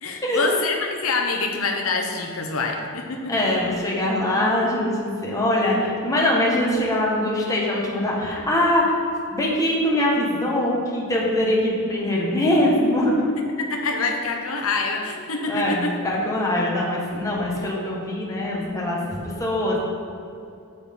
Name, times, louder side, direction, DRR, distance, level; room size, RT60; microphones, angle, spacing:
voice 1, 0.0-3.3 13.2-13.3 13.6-15.9, left 3 dB, 75° left, 2 dB, 1.0 m, -26 dB
voice 2, 3.3-8.9 9.3-13.1 15.5-19.8, left 1 dB, 15° left, -4 dB, 1.6 m, -22 dB
8.4 x 7.7 x 3.8 m, 2.6 s
head